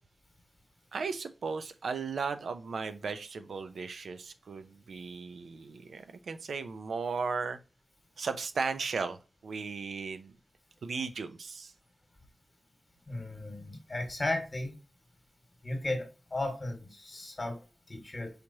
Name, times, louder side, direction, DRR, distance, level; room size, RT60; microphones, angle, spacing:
voice 1, 0.9-7.6 8.2-9.2 9.4-10.4 10.8-11.7, right 4 dB, 80° right, 0.5 m, -36 dB
voice 2, 13.1-14.7 15.6-18.3, left 2 dB, 35° left, 1.5 m, -35 dB
4.9 x 3.0 x 2.7 m
wide cardioid pair, 70°, 0 cm